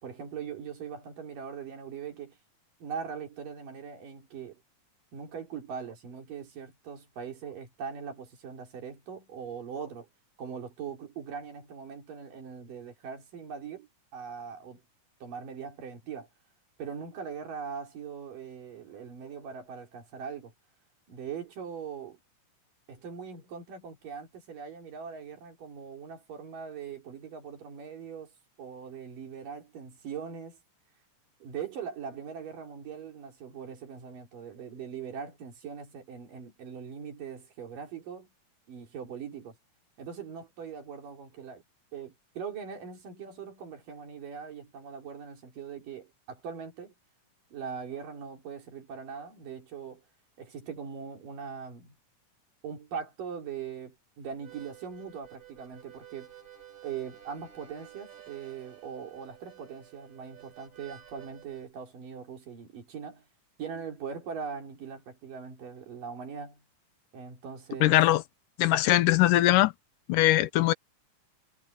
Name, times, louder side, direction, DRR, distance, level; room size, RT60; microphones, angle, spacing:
voice 1, 0.0-2.4 2.8-4.6 5.1-10.1 10.4-14.8 15.2-16.3 16.8-20.5 21.1-22.2 22.9-28.3 28.6-30.6 31.4-38.3 38.7-39.6 40.0-41.6 41.9-46.9 47.5-50.0 50.4-51.9 52.6-56.3 56.8-63.2 63.6-66.6 67.1-68.0, right 6 dB, 90° right, 5.2 m, -41 dB
Harmonica, 54.3-61.7, right 10 dB, 45° right, 7.1 m, -52 dB
voice 2, 67.8-68.2 68.6-69.7 70.1-70.7, left 15 dB, 90° left, 2.4 m, -21 dB
omnidirectional pair, 3.7 m